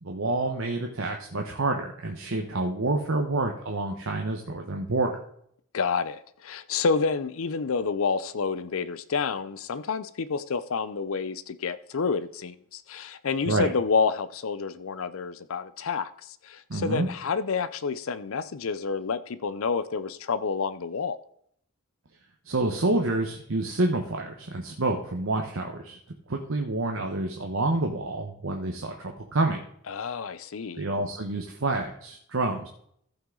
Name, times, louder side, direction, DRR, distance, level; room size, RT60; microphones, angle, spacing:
voice 1, 0.0-5.2 13.5-13.7 16.7-17.1 22.5-26.0 26.3-29.6 30.8-32.7, right 2 dB, 65° right, 1.0 m, -28 dB
voice 2, 5.7-16.1 16.4-21.2 29.9-30.8, left 5 dB, 70° left, 0.5 m, -29 dB
15.0 x 5.9 x 3.8 m
head